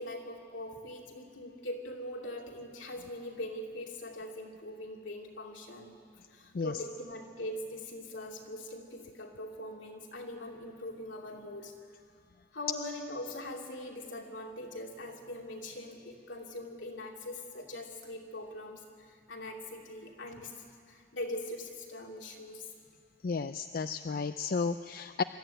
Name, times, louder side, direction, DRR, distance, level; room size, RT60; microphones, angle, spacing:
voice 1, 0.0-5.9 6.3-11.7 12.5-20.5 20.9-22.7, left 1 dB, 90° left, 0 dB, 2.7 m, -42 dB
voice 2, 23.2-25.2, left 4 dB, 50° left, 11 dB, 0.4 m, -33 dB
24.5 x 13.0 x 9.1 m, 2.2 s
head